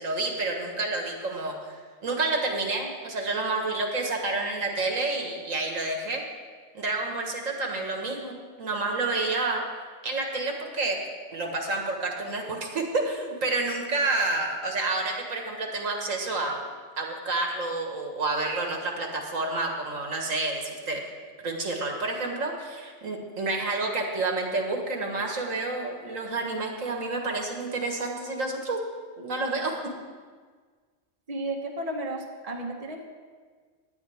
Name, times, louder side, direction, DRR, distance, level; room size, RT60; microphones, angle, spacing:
voice 1, 0.0-6.2 6.7-9.6 10.0-11.0 11.3-16.6 17.0-21.0 21.4-28.8 29.2-29.8, right 3 dB, 75° right, 2 dB, 1.9 m, -29 dB
voice 2, 31.3-33.0, right 1 dB, 30° right, 1 dB, 1.4 m, -33 dB
17.5 x 10.5 x 3.5 m, 1.6 s
omnidirectional pair, 1.4 m